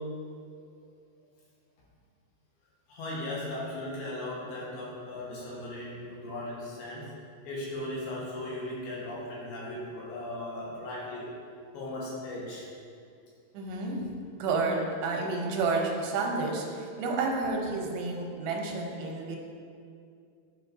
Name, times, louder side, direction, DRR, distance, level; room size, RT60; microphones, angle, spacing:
voice 1, 2.9-7.1 7.4-11.3 11.7-12.7, left 1 dB, 80° left, -5 dB, 3.2 m, -37 dB
voice 2, 13.5-14.0 14.4-19.4, right 3 dB, 80° right, 0 dB, 2.6 m, -30 dB
11.0 x 4.6 x 2.6 m, 2.4 s
omnidirectional pair, 4.5 m